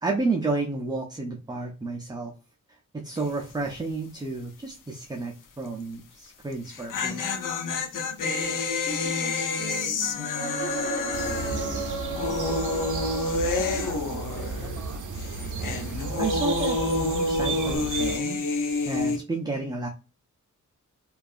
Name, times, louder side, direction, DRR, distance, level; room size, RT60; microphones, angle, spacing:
voice 1, 0.0-2.3 2.9-7.2 16.2-18.4 18.9-19.9, right 3 dB, 15° right, 1 dB, 0.4 m, -31 dB
sound 1, 3.2-3.5 3.8-3.9 6.5-14.9 15.1-19.2, left 3 dB, 85° left, 0.6 m, -29 dB
voice 2, 8.7-13.3 13.6-15.0, right 1 dB, 5° left, 0 dB, 0.8 m, -43 dB
sound 2, 10.3-14.1 17.8-17.9, right 3 dB, 55° left, 1.0 m, -34 dB
sound 3, 11.1-18.2, right 4 dB, 75° right, 0.5 m, -34 dB
2.7 x 2.3 x 2.4 m, 0.31 s
wide cardioid pair, 130°, 31 cm